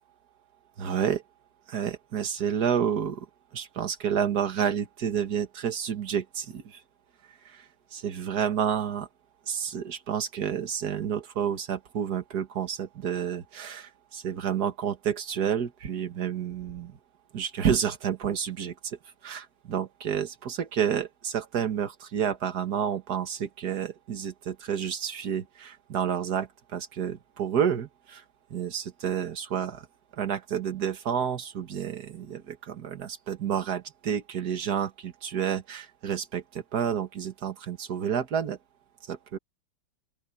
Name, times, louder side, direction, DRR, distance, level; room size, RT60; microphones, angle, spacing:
voice 1, 0.8-1.2 1.7-3.3 3.5-6.8 7.5-7.6 7.9-9.1 9.5-17.0 17.3-19.0 19.2-28.2 28.5-29.9 30.2-38.6 39.1-39.4, right 8 dB, 50° right, 2.0 m, -30 dB
open air
omnidirectional pair, 2.2 m